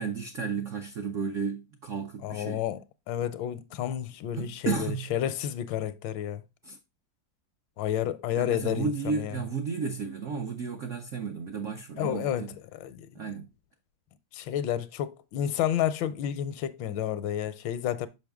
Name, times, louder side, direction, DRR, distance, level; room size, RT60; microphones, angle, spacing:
voice 1, 0.0-2.6 4.4-5.1 6.6-6.8 8.4-12.6 13.1-13.5, right 5 dB, 80° right, 0.7 m, -33 dB
voice 2, 2.2-2.8 3.1-6.4 7.8-9.4 12.0-13.2 14.3-18.1, left 10 dB, 80° left, 1.3 m, -31 dB
6.3 x 5.5 x 3.5 m
omnidirectional pair, 2.1 m